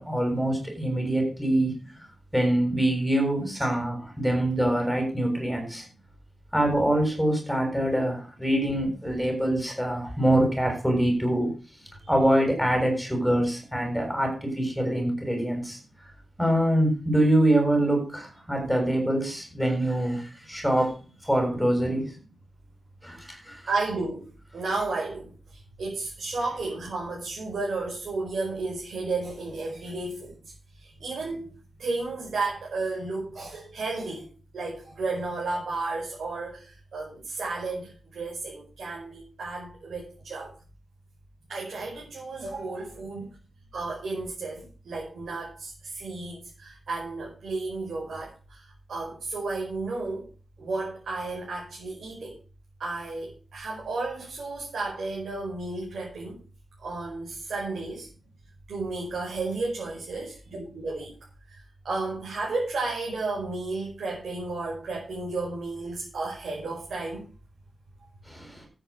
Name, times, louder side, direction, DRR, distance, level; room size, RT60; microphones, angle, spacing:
voice 1, 0.0-1.8 2.3-5.8 6.5-11.5 12.1-15.8 16.4-20.9 21.2-22.1 23.0-23.6 68.3-68.7, right 1 dB, ahead, 2 dB, 7.0 m, -24 dB
voice 2, 23.7-31.5 31.8-34.3 34.5-40.5 41.5-43.3 43.7-50.3 50.6-52.4 52.8-56.4 56.8-58.1 58.7-61.1 61.5-67.2, right 3 dB, 90° right, -3 dB, 5.3 m, -33 dB
13.0 x 9.1 x 5.3 m, 0.36 s
wide cardioid pair, 150°, 0 cm